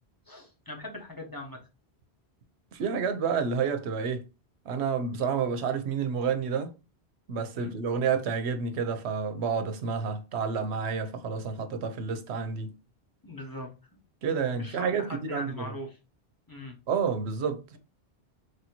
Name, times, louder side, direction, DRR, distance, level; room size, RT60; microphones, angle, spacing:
voice 1, 0.3-1.7 7.5-7.7 13.2-13.7 14.5-16.0 16.5-16.8, left 1 dB, 20° left, 0.8 m, -40 dB
voice 2, 2.7-4.3 4.6-6.7 7.3-12.7 14.2-15.7 16.9-17.8, right 6 dB, 90° right, 0.9 m, -29 dB
3.3 x 2.7 x 4.2 m
omnidirectional pair, 1.1 m